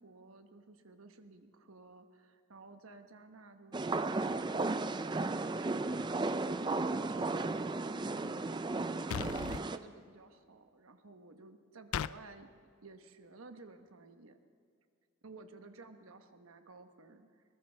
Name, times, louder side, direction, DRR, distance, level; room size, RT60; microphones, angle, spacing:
voice 1, 0.0-12.5 12.8-14.4 15.2-17.4, right 3 dB, 75° right, 7 dB, 1.1 m, -55 dB
sound 1, 3.7-9.8, right 3 dB, 20° right, 0.4 m, -34 dB
sound 2, 9.1-9.6 11.9-12.2, left 8 dB, 75° left, 0.3 m, -36 dB
22.0 x 19.5 x 3.4 m, 2.3 s
head